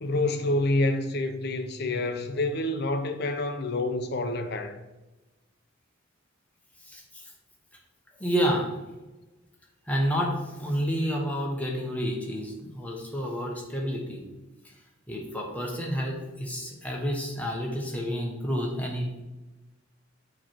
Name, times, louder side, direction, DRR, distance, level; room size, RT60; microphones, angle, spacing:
voice 1, 0.0-4.8, left 2 dB, 55° left, 0.6 m, -27 dB
voice 2, 6.9-7.3 8.2-8.7 9.9-14.2 15.1-19.2, equal, 10° left, 1.1 m, -29 dB
7.3 x 3.2 x 4.4 m
head